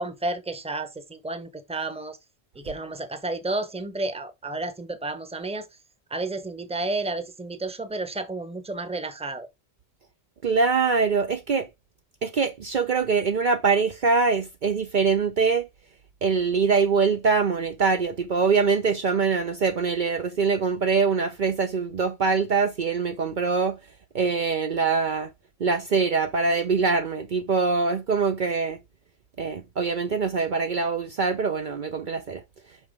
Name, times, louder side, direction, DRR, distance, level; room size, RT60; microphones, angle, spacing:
voice 1, 0.0-2.2 2.5-5.7 6.1-9.5, right 2 dB, 5° right, 0.8 m, -31 dB
voice 2, 10.4-11.7 12.2-15.7 16.2-23.8 24.1-25.3 25.6-28.8 29.4-32.4, right 5 dB, 55° right, 0.8 m, -23 dB
5.7 x 5.6 x 3.7 m
omnidirectional pair, 1.1 m